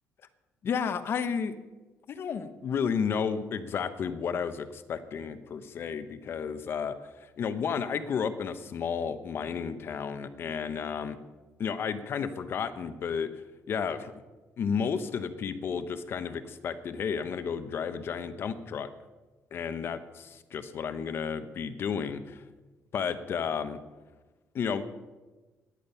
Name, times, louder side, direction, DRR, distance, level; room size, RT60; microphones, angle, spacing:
voice 1, 0.6-1.6 2.1-7.0 7.4-11.2 11.6-13.3 13.7-14.1 14.6-18.9 19.5-22.4 22.9-23.8 24.5-24.8, left 6 dB, 45° left, 11 dB, 1.0 m, -32 dB
16.0 x 10.5 x 5.6 m, 1.2 s
cardioid pair, 155°, 5 cm